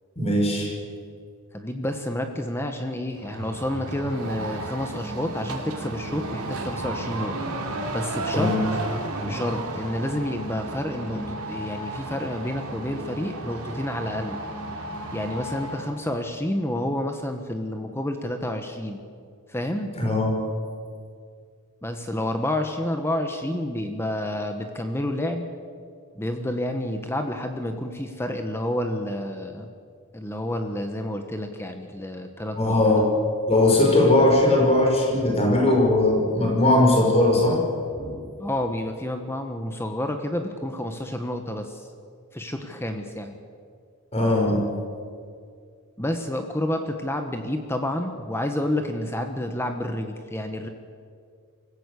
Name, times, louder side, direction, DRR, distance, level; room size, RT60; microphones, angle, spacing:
voice 1, 0.2-0.7 8.3-8.6 20.0-20.3 32.5-33.2 33.5-37.6 37.9-38.2 44.1-44.6, left 1 dB, 30° left, 0 dB, 5.6 m, -19 dB
voice 2, 1.5-7.5 7.9-8.5 9.2-14.4 15.1-19.0 19.5-19.9 21.8-25.5 26.1-29.7 30.1-32.8 38.4-41.9 42.3-43.3 46.0-50.7, left 1 dB, 10° left, 5 dB, 1.2 m, -29 dB
sound 1, 3.2-16.0, right 2 dB, 80° right, 3.5 m, -33 dB
25.0 x 15.5 x 8.4 m, 2.2 s
head